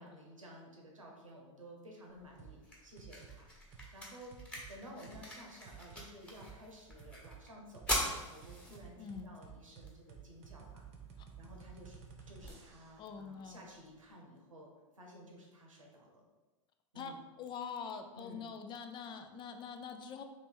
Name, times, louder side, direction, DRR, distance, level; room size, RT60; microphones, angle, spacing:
voice 1, 0.0-4.4 4.7-10.8 11.4-14.7 15.0-16.2 16.9-17.2 18.1-18.5, equal, 85° right, 0 dB, 1.0 m, -54 dB
sound 1, 2.1-14.1, equal, 5° left, 1.2 m, -44 dB
sound 2, 2.4-2.6 3.0-3.4 3.7-3.9 4.3-4.7 5.1-5.2 5.6-6.0 6.4-6.5 7.0-7.4 7.7-13.0, right 8 dB, 40° right, 0.8 m, -53 dB
voice 2, 8.7-9.3 11.2-11.3 13.0-13.7 16.9-20.2, left 6 dB, 30° left, 7 dB, 0.4 m, -45 dB
3.2 x 3.1 x 4.4 m, 1.2 s
figure-of-eight pair, 90°, 17 cm